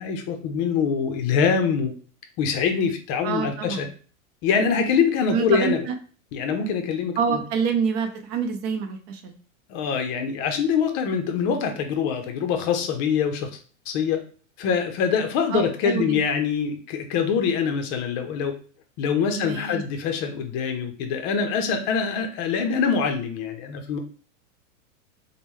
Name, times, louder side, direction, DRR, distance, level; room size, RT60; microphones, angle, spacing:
voice 1, 0.0-1.9 2.4-3.9 4.4-5.8 6.3-7.4 9.7-13.5 13.9-14.2 14.6-18.5 19.0-24.0, left 6 dB, 35° left, 5 dB, 0.6 m, -24 dB
voice 2, 3.2-3.9 5.3-5.9 7.2-9.4 15.5-16.2 19.3-19.8, right 6 dB, 40° right, 5 dB, 0.8 m, -26 dB
5.2 x 2.2 x 3.1 m, 0.41 s
supercardioid pair, 135°, 41 cm